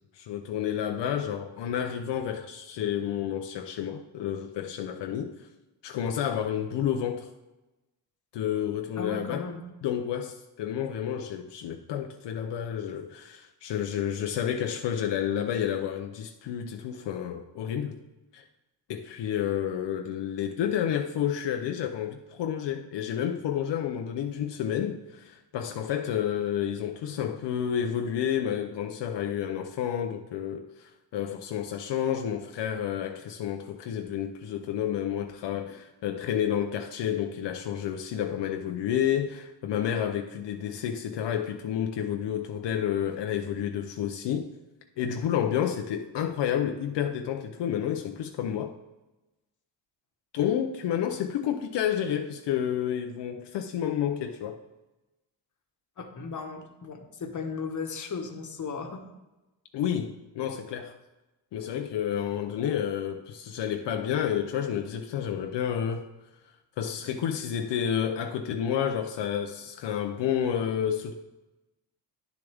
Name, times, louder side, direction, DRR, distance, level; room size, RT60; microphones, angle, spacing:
voice 1, 0.1-5.5 5.8-7.3 8.3-9.4 9.8-18.0 18.3-18.4 18.9-44.5 45.0-48.7 50.3-54.6 59.7-61.0 61.5-66.1 66.8-71.1, left 9 dB, 75° left, 5 dB, 0.7 m, -30 dB
voice 2, 9.0-9.6 47.5-47.6 56.0-59.0, left 5 dB, 45° left, 5 dB, 1.3 m, -36 dB
10.0 x 7.0 x 3.5 m, 1.0 s
cardioid pair, 100°, 43 cm